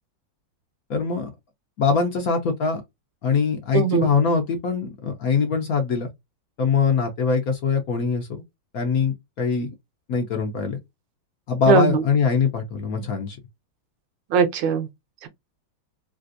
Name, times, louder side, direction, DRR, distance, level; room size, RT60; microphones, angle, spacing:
voice 1, 0.9-1.3 1.8-2.8 3.2-6.1 6.6-8.4 8.7-9.7 10.1-10.8 11.5-13.4, left 5 dB, 60° left, 1.0 m, -22 dB
voice 2, 3.7-4.1 11.7-12.0 14.3-14.9 15.2-15.3, right 5 dB, 75° right, 1.3 m, -20 dB
3.3 x 2.5 x 2.5 m
omnidirectional pair, 2.1 m